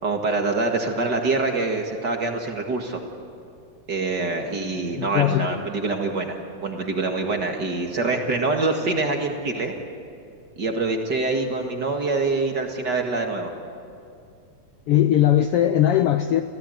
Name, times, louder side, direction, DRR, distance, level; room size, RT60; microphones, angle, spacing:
voice 1, 0.0-3.0 3.9-9.7 10.6-13.5, right 3 dB, 40° right, 3 dB, 2.1 m, -25 dB
voice 2, 4.9-5.6 14.9-16.4, left 11 dB, 90° left, 9 dB, 1.3 m, -19 dB
29.0 x 16.5 x 9.2 m, 2.5 s
omnidirectional pair, 3.6 m